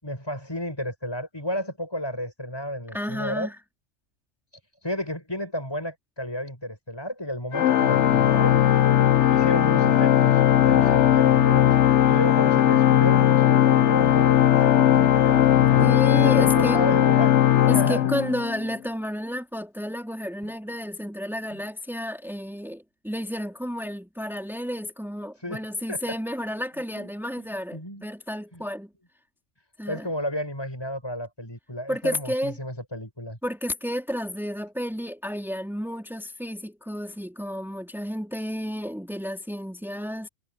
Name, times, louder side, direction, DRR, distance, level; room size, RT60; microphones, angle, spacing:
voice 1, 0.0-3.5 4.8-8.6 9.3-11.8 12.1-18.1 21.5-21.6 25.4-25.6 25.9-26.0 26.9-27.1 27.7-28.1 28.5-28.6 29.9-33.4, equal, 20° left, 7.2 m, -32 dB
voice 2, 2.9-3.6 15.8-16.8 17.7-28.9 29.8-30.1 31.9-32.5 33.4-40.3, equal, ahead, 3.9 m, -31 dB
Organ, 7.5-18.7, left 11 dB, 70° left, 1.0 m, -18 dB
omnidirectional pair, 1.3 m